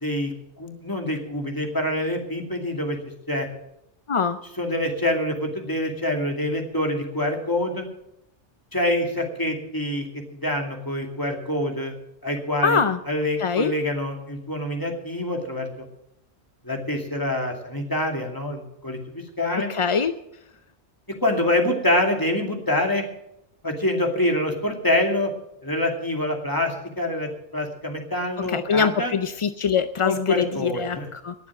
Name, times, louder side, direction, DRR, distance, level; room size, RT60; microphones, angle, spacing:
voice 1, 0.0-3.0 3.3-3.5 4.6-7.8 8.7-11.9 12.2-12.8 13.1-15.9 16.6-19.7 21.2-23.0 23.6-25.3 25.6-29.1 30.0-31.1, left 1 dB, 15° left, 2 dB, 2.4 m, -26 dB
voice 2, 12.6-13.0 13.4-13.7 19.7-20.1 28.4-31.3, left 6 dB, 45° left, 10 dB, 0.4 m, -23 dB
19.0 x 7.2 x 7.4 m, 0.80 s
omnidirectional pair, 1.2 m